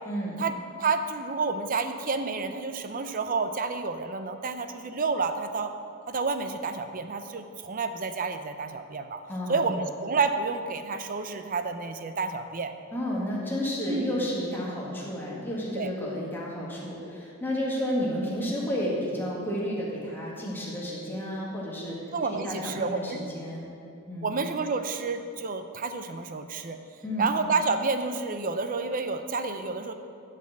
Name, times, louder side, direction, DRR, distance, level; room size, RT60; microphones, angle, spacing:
voice 1, 0.8-5.7 6.1-9.2 9.5-12.7 13.9-14.1 15.8-15.9 22.1-23.2 24.2-26.8 27.2-29.9, right 4 dB, 40° right, 8 dB, 0.5 m, -29 dB
voice 2, 9.3-9.7 12.9-22.0 22.3-23.7 24.0-24.3 27.0-27.3, equal, 10° left, -5 dB, 1.7 m, -31 dB
12.0 x 4.2 x 7.5 m, 2.5 s
head